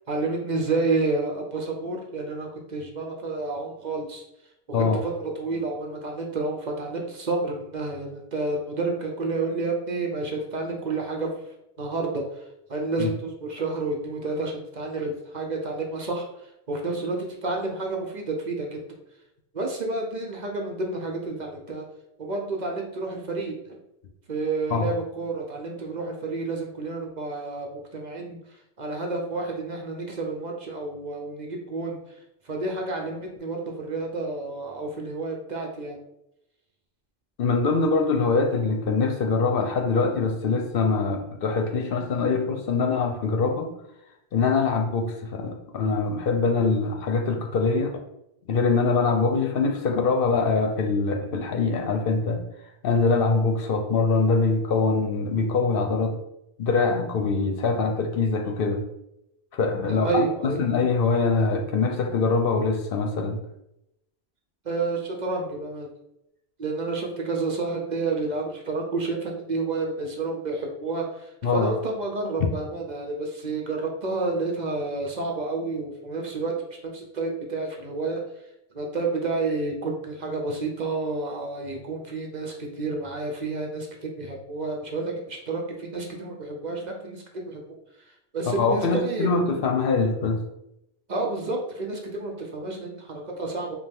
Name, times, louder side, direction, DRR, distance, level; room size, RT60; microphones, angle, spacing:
voice 1, 0.1-4.2 4.7-11.3 11.8-12.2 12.7-16.3 16.7-18.8 19.5-21.8 22.2-23.8 24.3-27.7 27.9-28.4 28.8-32.0 32.5-36.0 59.9-60.6 64.6-65.9 66.6-71.1 71.5-78.2 78.7-87.6 88.3-89.3 91.1-93.8, right 3 dB, 50° right, 1 dB, 0.8 m, -30 dB
voice 2, 37.4-43.7 44.3-48.0 48.5-52.4 52.8-56.2 56.6-58.8 59.5-63.4 71.4-71.7 88.5-90.4, left 4 dB, 65° left, 4 dB, 0.8 m, -23 dB
5.5 x 2.2 x 3.4 m, 0.84 s
omnidirectional pair, 1.1 m